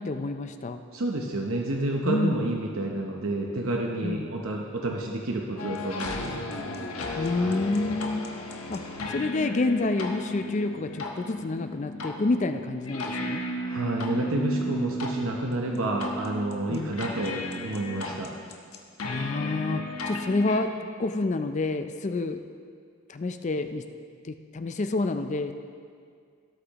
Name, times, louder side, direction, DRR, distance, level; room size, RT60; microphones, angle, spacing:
voice 1, 0.0-0.8 2.0-2.4 4.0-4.3 7.2-8.3 8.7-8.8 9.1-13.4 16.7-16.9 19.0-20.7 21.0-22.4 23.1-23.9 24.2-25.5, left 2 dB, 35° left, 8 dB, 0.4 m, -28 dB
voice 2, 0.9-6.6 7.4-7.7 13.6-18.3, right 2 dB, 70° right, 0 dB, 0.8 m, -30 dB
sound 1, 5.6-20.6, left 1 dB, 85° left, 1.1 m, -34 dB
17.0 x 8.3 x 3.0 m, 2.2 s
head